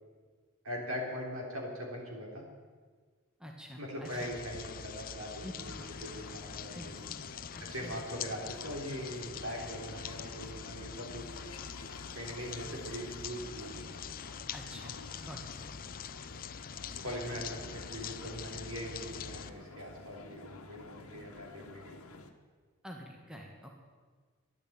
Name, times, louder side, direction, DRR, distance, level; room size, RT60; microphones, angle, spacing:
voice 1, 0.6-2.4 3.8-6.9 7.7-11.3 12.1-14.0 17.0-22.0, equal, 70° right, 0 dB, 3.8 m, -41 dB
voice 2, 3.4-4.3 5.4-5.5 6.7-7.2 7.5-8.0 9.6-9.8 10.2-10.4 14.5-15.0 15.2-15.5 22.8-23.7, equal, 5° right, 0 dB, 1.6 m, -47 dB
sound 1, 4.0-19.5, left 7 dB, 40° left, 0.5 m, -44 dB
sound 2, 5.6-22.3, left 3 dB, 85° left, 1.4 m, -51 dB
12.5 x 10.5 x 8.9 m, 1.5 s
head